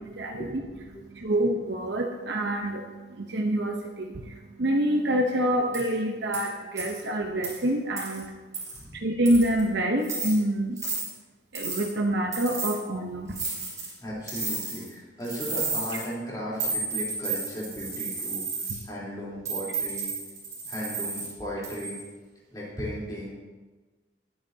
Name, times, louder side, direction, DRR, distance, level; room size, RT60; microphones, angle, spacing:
voice 1, 0.3-1.1 8.7-9.1 14.0-20.1 20.7-22.0 22.5-23.3, equal, 20° left, -7 dB, 3.6 m, -36 dB
voice 2, 1.2-2.8 3.3-4.1 4.6-8.3 9.0-10.8 11.5-13.4, right 1 dB, 75° right, 1 dB, 0.9 m, -26 dB
sound 1, 5.7-5.9 6.3-6.4 6.8-7.0 7.4-7.5 8.0-8.2 8.5-8.8 9.3-9.6 10.0-10.3 10.8-11.1 11.6-11.9 12.3-12.8 13.3-13.9 14.3-14.9 15.2-16.0 16.6-18.8 19.5-21.3 21.6-22.0, right 4 dB, 20° right, 3.8 m, -32 dB
19.0 x 9.2 x 2.8 m, 1.3 s
head